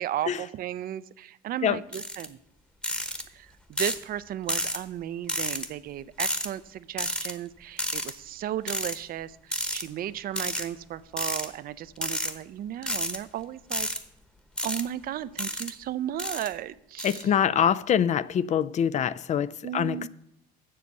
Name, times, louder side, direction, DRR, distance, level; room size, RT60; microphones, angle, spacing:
voice 1, 0.0-2.4 3.3-13.9 14.6-17.3 19.6-20.1, right 11 dB, 60° right, 0.5 m, -35 dB
sound 1, 1.9-2.3 2.8-3.2 3.8-4.0 4.5-4.8 5.3-5.7 6.2-6.5 7.0-7.3 7.8-8.1 8.7-9.0 9.5-9.8 10.4-10.7 11.2-11.5 12.0-12.3 12.8-13.2 13.7-14.0 14.6-14.8 15.4-15.7 16.2-16.5 17.0-17.2, equal, 5° left, 1.1 m, -30 dB
voice 2, 17.0-20.1, left 8 dB, 45° left, 0.4 m, -25 dB
7.6 x 6.8 x 8.0 m
cardioid pair, 110°, 17 cm